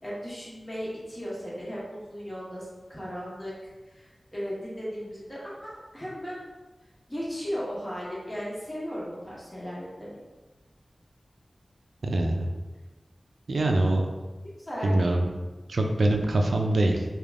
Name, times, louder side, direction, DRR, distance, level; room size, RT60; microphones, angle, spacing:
voice 1, 0.0-6.4 7.1-10.2 14.4-14.9, equal, 15° left, -8 dB, 1.4 m, -36 dB
voice 2, 12.0-12.5 13.5-14.1 14.8-15.3 15.7-17.0, right 1 dB, 85° right, 2 dB, 0.4 m, -24 dB
3.4 x 2.3 x 3.5 m, 1.2 s
wide cardioid pair, 60°, 0 cm